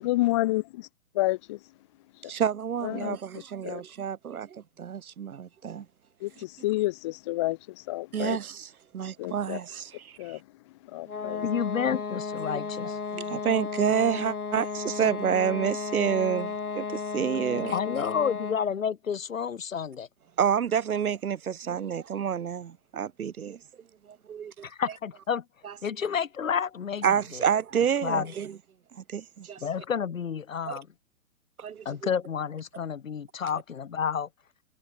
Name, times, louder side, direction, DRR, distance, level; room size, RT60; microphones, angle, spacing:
voice 1, 0.0-0.6 1.2-1.6 2.8-3.2 3.6-3.8 6.2-8.4 9.2-9.6 10.2-10.4 10.9-11.4, left 18 dB, 20° left, 0.6 m, -29 dB
voice 2, 2.2-5.9 8.1-10.2 12.4-12.6 13.1-17.8 20.4-23.6 24.1-24.7 25.6-25.7 27.0-28.6 28.9-29.6 30.7-30.8 31.6-31.9, right 8 dB, 80° right, 0.7 m, -29 dB
sound 1, 11.1-18.8, left 5 dB, 90° left, 1.0 m, -34 dB
voice 3, 11.4-13.0 17.7-20.1 24.6-25.4 25.8-27.5 28.0-28.3 29.6-30.9 31.9-34.3, left 7 dB, 65° left, 3.5 m, -30 dB
figure-of-eight pair, 120°, 43 cm